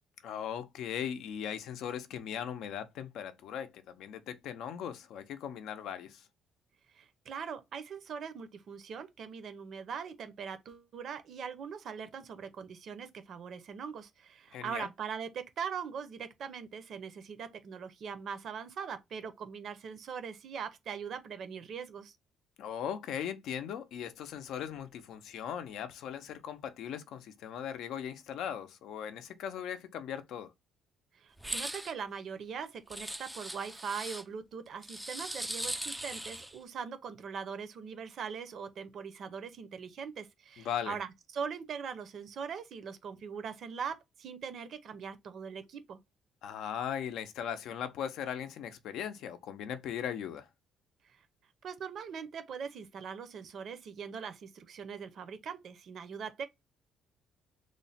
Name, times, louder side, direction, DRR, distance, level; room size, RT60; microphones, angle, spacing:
voice 1, 0.2-6.3 14.5-14.9 22.6-30.5 40.6-41.0 46.4-50.5, left 9 dB, 70° left, 0.5 m, -39 dB
voice 2, 6.9-22.2 31.1-46.0 51.1-51.2 51.6-56.4, right 6 dB, 50° right, 0.6 m, -41 dB
sound 1, 31.4-31.9 32.9-34.2 34.8-36.6, right 1 dB, 5° right, 0.3 m, -39 dB
3.1 x 2.1 x 4.0 m
cardioid pair, 150°, 0 cm